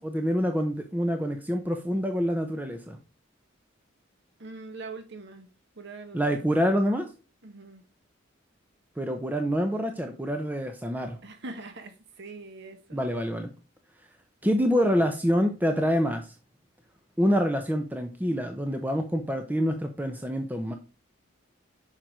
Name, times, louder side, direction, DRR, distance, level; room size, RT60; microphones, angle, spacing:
voice 1, 0.0-3.0 6.1-7.1 9.0-11.2 12.9-13.5 14.4-16.3 17.2-20.7, equal, 10° right, 0.7 m, -26 dB
voice 2, 4.4-5.5 5.8-6.5 7.4-7.8 11.2-13.1, right 3 dB, 60° right, 1.1 m, -43 dB
7.6 x 5.8 x 4.9 m
head